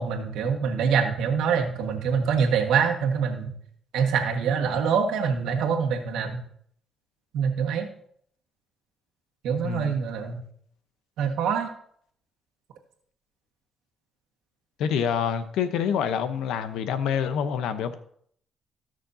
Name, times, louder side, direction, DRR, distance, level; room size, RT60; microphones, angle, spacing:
voice 1, 0.0-3.5 3.9-6.4 7.3-7.9 9.4-10.4 11.2-11.7, right 6 dB, 90° right, 2 dB, 1.6 m, -25 dB
voice 2, 9.6-10.0 14.8-17.9, left 7 dB, 85° left, 11 dB, 0.8 m, -27 dB
17.0 x 6.4 x 2.8 m, 0.64 s
cardioid pair, 90°, 0 cm